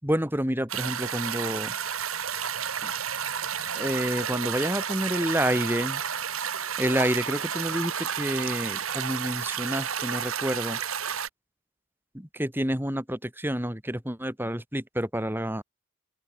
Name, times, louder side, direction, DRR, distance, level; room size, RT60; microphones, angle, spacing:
voice 1, 0.0-1.7 2.8-2.9 3.8-6.0 6.8-10.8 12.1-15.6, equal, 10° right, 3.7 m, -29 dB
sound 1, 0.7-11.3, right 8 dB, 85° right, 2.7 m, -31 dB
open air
head